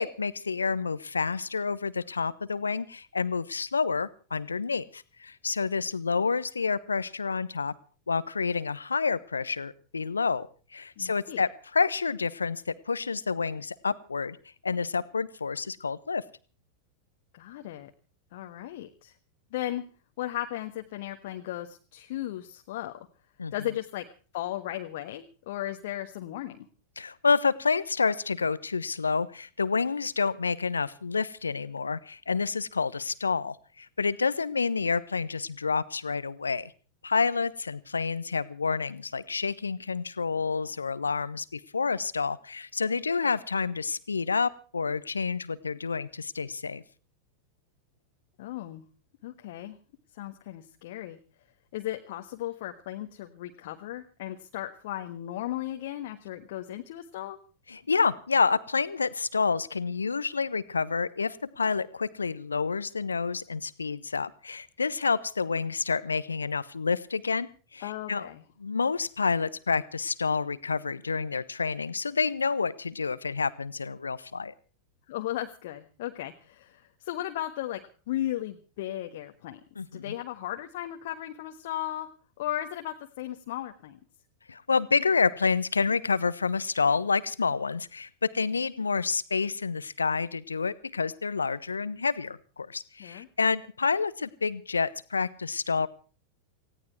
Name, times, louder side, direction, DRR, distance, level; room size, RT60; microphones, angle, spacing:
voice 1, 0.0-7.7 8.1-10.5 10.7-14.4 14.6-16.2 23.4-23.5 27.0-36.7 37.0-46.8 57.7-68.3 68.6-74.5 79.8-80.1 84.5-95.9, left 5 dB, 75° left, 17 dB, 1.0 m, -29 dB
voice 2, 11.0-11.4 17.3-17.9 18.3-19.1 19.5-19.8 20.2-23.1 23.5-24.0 24.3-26.7 48.4-48.8 49.2-49.8 50.1-51.2 51.7-57.4 67.8-68.4 75.1-77.8 78.1-79.6 79.9-82.1 82.4-84.0 93.0-93.3, left 13 dB, 55° left, 5 dB, 1.4 m, -36 dB
19.0 x 16.5 x 4.6 m, 0.38 s
figure-of-eight pair, 90°, 0 cm